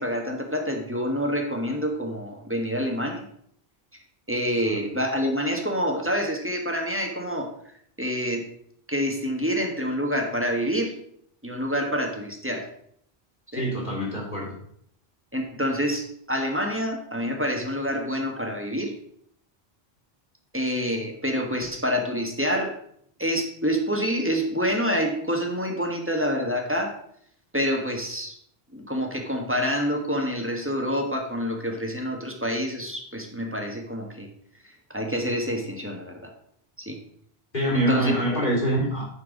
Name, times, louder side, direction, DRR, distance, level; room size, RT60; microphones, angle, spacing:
voice 1, 0.0-3.3 4.3-7.5 8.0-8.5 8.9-10.9 11.4-12.6 13.5-13.6 15.3-18.9 20.5-22.8 23.2-26.9 27.5-28.3 28.7-34.3 34.6-36.2 36.8-37.0 37.7-38.4, equal, 10° right, 1 dB, 1.3 m, -27 dB
voice 2, 13.5-14.5 37.5-39.0, right 1 dB, 50° left, -3 dB, 4.0 m, -25 dB
9.7 x 4.6 x 5.1 m, 0.67 s
omnidirectional pair, 1.1 m